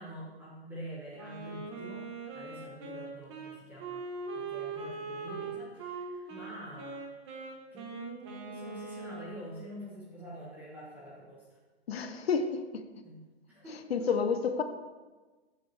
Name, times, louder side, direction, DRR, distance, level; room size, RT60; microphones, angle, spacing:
voice 1, 0.0-4.0 4.3-7.1 7.7-11.6 13.0-13.2 13.5-13.8, equal, 5° right, -7 dB, 1.2 m, -46 dB
Wind instrument woodwind instrument, 1.1-9.6, right 4 dB, 25° right, 1.0 m, -41 dB
voice 2, 11.9-12.8 13.9-14.6, left 5 dB, 65° left, 9 dB, 0.9 m, -29 dB
12.5 x 6.8 x 3.3 m, 1.3 s
hypercardioid pair, 165°, 33 cm